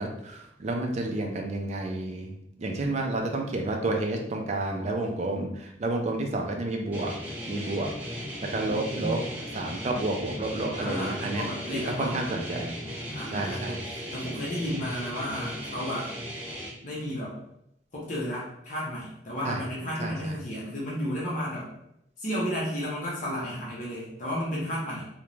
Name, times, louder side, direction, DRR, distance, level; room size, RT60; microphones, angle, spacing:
voice 1, 0.0-7.1 7.5-7.9 8.5-9.2 9.5-11.5 11.7-12.8 13.3-13.8 19.4-19.6 20.0-20.4, right 2 dB, 40° right, 2 dB, 0.4 m, -30 dB
sound 1, 6.9-16.7, equal, 10° right, 0.7 m, -37 dB
voice 2, 8.6-9.1 10.8-12.3 13.1-13.8 14.1-16.2 16.8-17.4 17.9-21.7 22.2-25.0, equal, 45° left, -6 dB, 0.7 m, -33 dB
2.5 x 2.1 x 3.0 m, 0.78 s
head